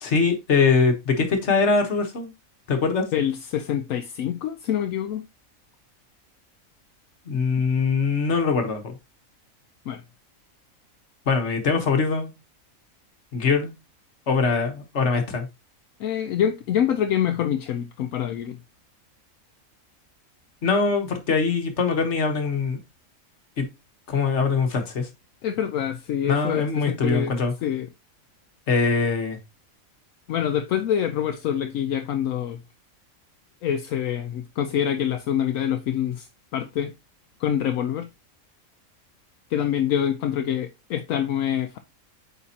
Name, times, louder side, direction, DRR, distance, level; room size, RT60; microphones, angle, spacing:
voice 1, 0.0-2.3 2.7-3.0 7.3-8.9 11.3-12.3 13.3-13.7 14.3-15.5 20.6-22.8 23.6-23.7 24.1-25.1 26.2-27.5 28.7-29.4, left 4 dB, 60° left, 1.4 m, -22 dB
voice 2, 3.1-5.3 9.9-10.0 16.0-18.6 25.4-27.3 27.6-27.9 30.3-32.6 33.6-36.3 36.5-36.9 37.4-38.1 39.5-41.8, left 9 dB, 75° left, 1.0 m, -26 dB
8.5 x 4.1 x 2.8 m
omnidirectional pair, 1.4 m